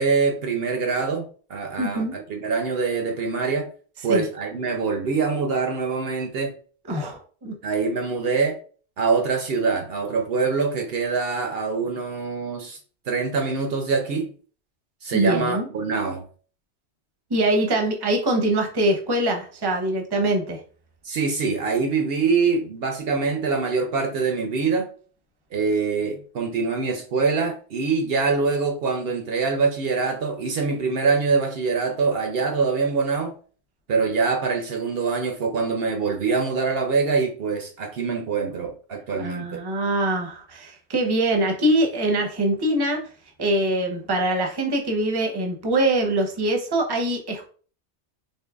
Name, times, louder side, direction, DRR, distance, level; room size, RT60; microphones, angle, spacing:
voice 1, 0.0-3.7 4.0-6.5 7.6-8.6 9.0-12.8 13.1-14.3 15.0-16.2 21.0-24.9 25.5-33.3 33.9-39.5, right 4 dB, 65° right, 0.8 m, -24 dB
voice 2, 1.8-2.1 4.1-4.2 6.9-7.5 15.1-15.7 17.3-20.6 39.2-43.0 43.4-47.5, right 1 dB, 25° right, 0.6 m, -23 dB
4.5 x 2.8 x 2.3 m
omnidirectional pair, 1.2 m